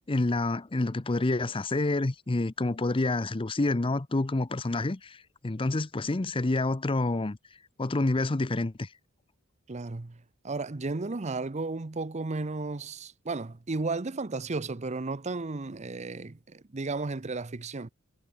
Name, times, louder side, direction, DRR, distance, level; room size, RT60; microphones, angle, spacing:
voice 1, 0.1-7.4 7.8-8.9, left 2 dB, 25° left, 0.6 m, -28 dB
voice 2, 9.7-10.2 10.4-17.9, right 3 dB, 30° right, 0.7 m, -34 dB
head